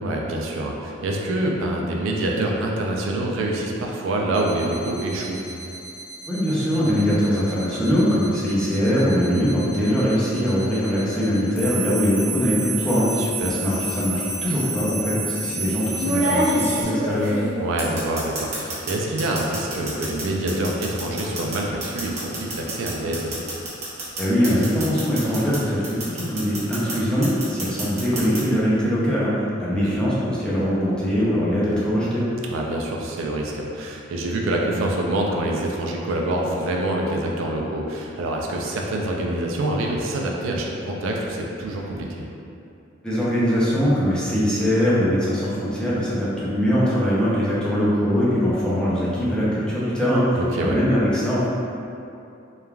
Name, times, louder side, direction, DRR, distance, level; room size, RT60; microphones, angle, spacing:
voice 1, 0.0-5.4 13.2-13.6 17.6-23.3 29.7-29.9 32.5-42.2 50.3-50.8, right 1 dB, 80° right, -1 dB, 0.4 m, -26 dB
sound 1, 4.3-16.8, right 3 dB, 90° left, 0.5 m, -32 dB
voice 2, 6.3-17.3 24.2-32.2 43.0-51.5, equal, 5° left, -9 dB, 0.5 m, -22 dB
sound 2, 12.8-13.1 14.3-14.4 16.0-18.9 19.2-25.6 25.8-26.9 27.2-28.4, right 1 dB, 35° right, 0.8 m, -27 dB
3.1 x 2.2 x 2.3 m, 2.7 s
head